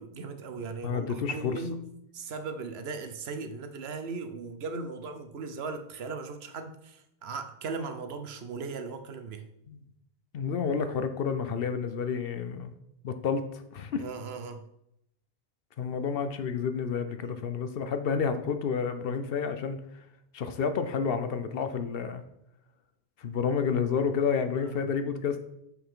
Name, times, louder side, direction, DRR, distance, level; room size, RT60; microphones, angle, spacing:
voice 1, 0.0-9.5 14.0-14.7 17.2-17.3 24.6-24.8, right 4 dB, 75° right, 8 dB, 1.0 m, -38 dB
voice 2, 0.8-1.6 9.7-9.8 10.3-12.7 13.0-14.0 15.8-19.8 20.3-22.2 23.2-25.4, left 6 dB, 65° left, 9 dB, 0.8 m, -30 dB
6.8 x 5.8 x 3.7 m, 0.78 s
omnidirectional pair, 1.1 m